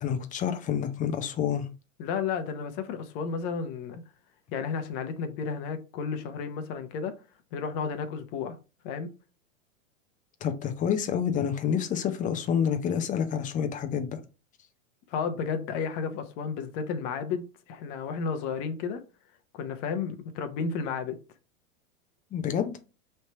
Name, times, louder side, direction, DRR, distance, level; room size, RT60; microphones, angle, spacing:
voice 1, 0.0-1.7 10.4-14.2 22.3-22.8, left 8 dB, 20° left, 0.5 m, -28 dB
voice 2, 2.0-4.0 4.5-7.2 7.5-8.6 8.8-9.1 15.1-19.0 19.5-21.2, left 6 dB, 45° left, 0.8 m, -32 dB
3.3 x 2.7 x 4.5 m
hypercardioid pair, 115°, 41 cm